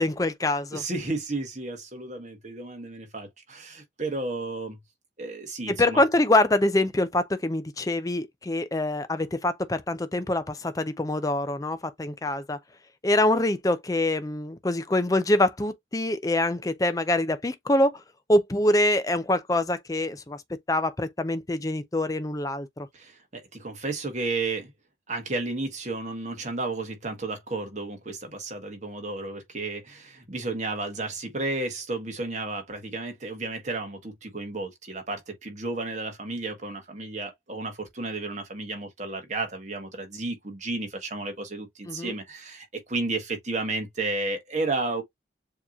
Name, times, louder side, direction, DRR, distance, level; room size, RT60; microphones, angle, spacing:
voice 1, 0.0-0.8 5.7-12.6 13.0-18.0 18.3-20.4 20.7-22.9 41.9-42.1, left 1 dB, 20° left, 0.5 m, -25 dB
voice 2, 0.7-4.8 5.2-6.0 22.9-24.7 25.1-45.0, right 3 dB, 40° right, 1.3 m, -32 dB
7.0 x 2.9 x 2.3 m
head